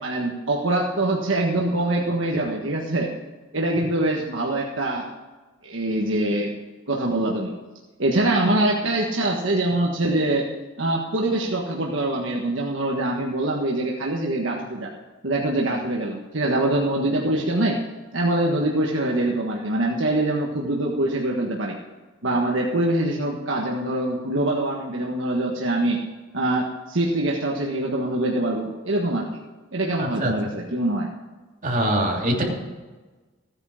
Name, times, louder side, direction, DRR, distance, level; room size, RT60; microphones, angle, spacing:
voice 1, 0.0-3.1 3.5-5.0 5.6-6.6 6.9-7.5 8.0-10.5 10.8-14.9 15.2-17.8 18.1-21.8 22.2-26.0 26.3-29.3 29.7-31.1, right 1 dB, 65° right, -1 dB, 1.5 m, -24 dB
voice 2, 30.0-30.3 31.6-32.4, right 1 dB, 40° right, -2 dB, 3.1 m, -23 dB
15.0 x 9.6 x 4.9 m, 1.3 s
head